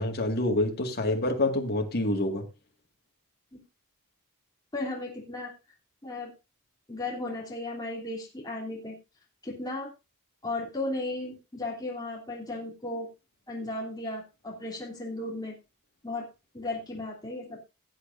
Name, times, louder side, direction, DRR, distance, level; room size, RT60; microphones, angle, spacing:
voice 1, 0.0-2.5, left 1 dB, 45° left, 2 dB, 2.0 m, -27 dB
voice 2, 4.7-5.5 6.0-6.3 6.9-8.9 9.4-9.9 10.4-13.1 13.5-15.5 16.0-16.2 16.5-17.6, left 2 dB, 20° left, -3 dB, 3.0 m, -35 dB
17.5 x 8.7 x 2.6 m, 0.27 s
head